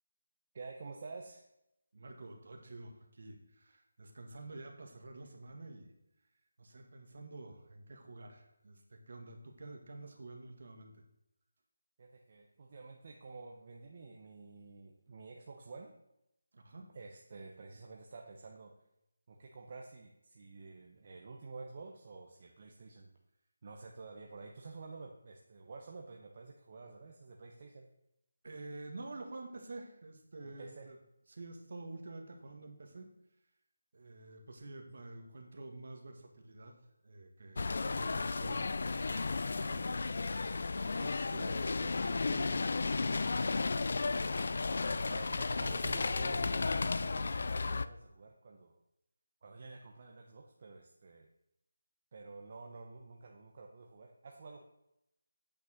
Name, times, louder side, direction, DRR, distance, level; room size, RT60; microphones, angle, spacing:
voice 1, 0.5-1.4 12.0-15.9 16.9-18.7 19.3-23.1 23.6-27.9 30.4-30.9 44.8-48.8 49.4-51.3 52.1-54.6, right 3 dB, 30° right, 1 dB, 0.9 m, -50 dB
voice 2, 1.9-5.9 6.6-11.0 16.5-16.9 28.4-31.0 31.3-33.1 33.9-36.8 37.0-39.0 39.5-43.7, right 2 dB, 50° right, 4 dB, 1.8 m, -49 dB
sound 1, 37.6-47.9, left 3 dB, 50° left, 0.4 m, -34 dB
8.6 x 6.3 x 6.5 m, 0.85 s
figure-of-eight pair, 175°, 0 cm